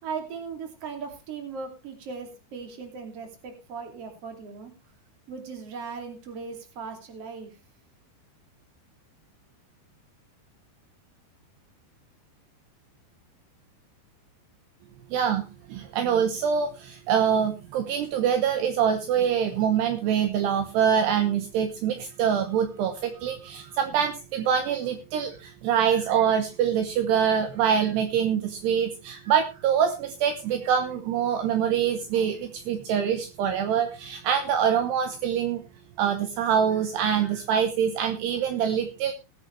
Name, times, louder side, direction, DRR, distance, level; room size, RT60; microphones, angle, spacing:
voice 1, 0.0-4.7 5.3-7.6, right 5 dB, 40° right, 4 dB, 3.1 m, -38 dB
voice 2, 15.1-15.4 15.7-35.6 36.0-39.1, right 8 dB, 75° right, 7 dB, 3.0 m, -25 dB
19.5 x 9.0 x 3.3 m, 0.29 s
omnidirectional pair, 5.2 m